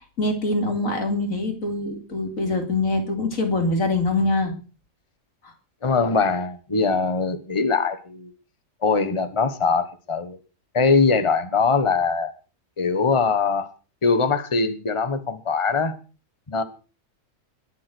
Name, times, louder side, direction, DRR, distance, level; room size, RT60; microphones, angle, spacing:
voice 1, 0.2-4.5 5.4-5.5, left 2 dB, 85° left, 3.2 m, -24 dB
voice 2, 5.8-8.3 8.8-10.4 10.7-12.3 12.8-13.7 14.0-16.0 16.5-16.6, left 4 dB, 25° left, 1.3 m, -22 dB
22.0 x 7.6 x 6.1 m
omnidirectional pair, 1.4 m